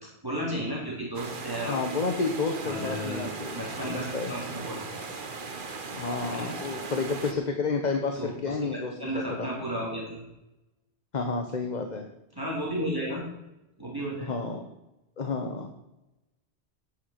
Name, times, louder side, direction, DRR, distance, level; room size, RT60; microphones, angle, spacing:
voice 1, 0.2-1.8 2.6-5.0 6.2-6.5 8.2-10.2 12.4-13.2 13.8-14.3, equal, 20° right, -4 dB, 3.8 m, -33 dB
sound 1, 1.1-7.3, right 4 dB, 50° right, 1.3 m, -38 dB
voice 2, 1.6-3.5 3.8-4.3 6.0-9.5 11.1-12.1 14.2-14.7 15.2-15.7, left 4 dB, 40° left, 4 dB, 1.2 m, -30 dB
11.5 x 9.6 x 5.9 m, 0.94 s
omnidirectional pair, 1.1 m